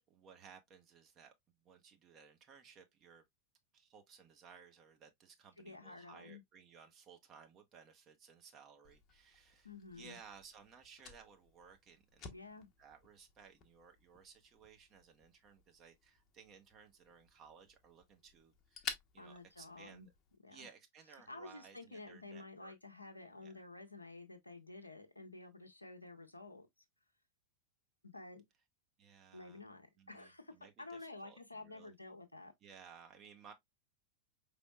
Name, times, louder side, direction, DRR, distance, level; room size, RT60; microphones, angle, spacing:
voice 1, 0.0-1.3 1.6-3.2 3.7-20.1 20.5-22.7 23.4-23.6 29.0-29.6 30.0-31.9 32.6-33.5, right 6 dB, 30° right, 0.9 m, -59 dB
voice 2, 5.6-6.4 9.6-10.2 12.3-12.7 19.2-20.1 20.4-20.7 21.3-26.7 28.0-28.4 29.3-32.5, left 2 dB, 80° left, 0.7 m, -51 dB
Fire, 8.8-20.4, left 6 dB, 30° left, 0.9 m, -53 dB
5.2 x 3.4 x 2.2 m
figure-of-eight pair, 90°, 0 cm